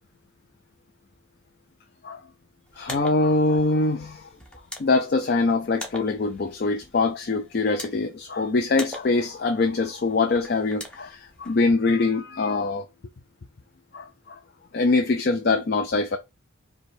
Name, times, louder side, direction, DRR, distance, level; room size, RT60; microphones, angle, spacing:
voice 1, 2.7-4.3 4.8-12.8 13.9-14.4 14.7-16.2, left 3 dB, 50° left, 0.4 m, -23 dB
sound 1, 2.7-11.6, left 1 dB, 5° left, 0.7 m, -43 dB
5.0 x 2.3 x 4.3 m
head